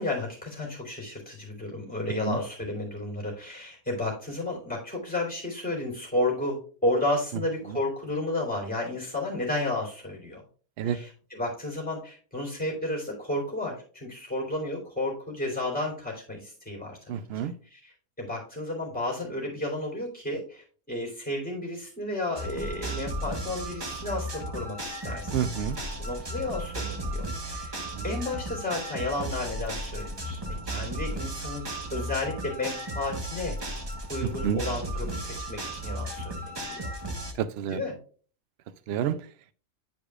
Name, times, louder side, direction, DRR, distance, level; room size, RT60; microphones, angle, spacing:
voice 1, 0.0-10.4 10.8-25.4 26.0-27.7 28.0-33.5 34.1-36.9 37.7-38.0, left 2 dB, 5° left, 2.9 m, -32 dB
voice 2, 17.1-17.5 25.3-25.8 28.0-28.1 34.4-34.6 37.4-37.8 38.9-39.2, right 9 dB, 65° right, 0.6 m, -28 dB
sound 1, 22.4-37.3, right 1 dB, 25° right, 0.7 m, -35 dB
10.0 x 4.9 x 2.4 m
omnidirectional pair, 1.4 m